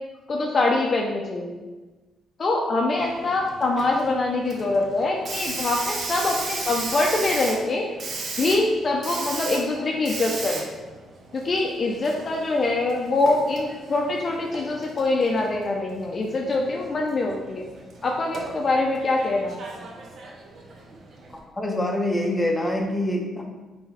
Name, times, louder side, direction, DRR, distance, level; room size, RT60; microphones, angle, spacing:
voice 1, 0.3-1.5 2.4-7.8 8.4-10.6 11.3-17.6 18.0-19.6, left 2 dB, 40° left, 0 dB, 0.5 m, -24 dB
Hiss, 3.0-21.4, right 3 dB, 55° right, 0.7 m, -36 dB
voice 2, 21.6-23.4, left 1 dB, 15° left, 0 dB, 0.8 m, -25 dB
3.8 x 3.4 x 4.1 m, 1.2 s
cardioid pair, 90°, 0 cm